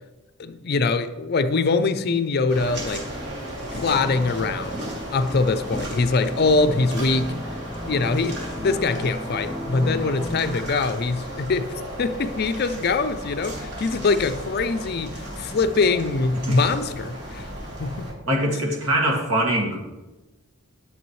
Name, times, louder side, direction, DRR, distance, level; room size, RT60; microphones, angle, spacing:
voice 1, 0.4-3.1 3.7-4.8 5.1-7.3 7.8-17.5 17.8-18.1, left 3 dB, 45° left, 0.4 m, -23 dB
walking into underpass and slowing down, 2.5-18.1, right 1 dB, 55° right, 2.7 m, -35 dB
sound 1, 3.9-10.6, left 1 dB, 10° left, 1.2 m, -35 dB
voice 2, 18.3-19.8, right 1 dB, 75° right, 2.1 m, -22 dB
11.0 x 7.7 x 3.1 m
head